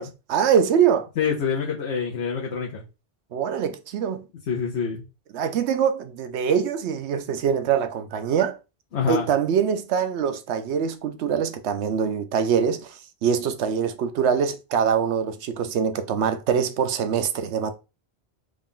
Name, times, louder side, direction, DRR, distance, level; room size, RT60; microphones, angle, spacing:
voice 1, 0.0-1.1 3.3-4.2 5.3-8.6 9.1-17.7, right 7 dB, 80° right, 0.9 m, -24 dB
voice 2, 1.2-2.8 4.5-5.0 8.9-9.3, left 6 dB, 80° left, 1.1 m, -26 dB
3.7 x 2.4 x 3.6 m
omnidirectional pair, 1.1 m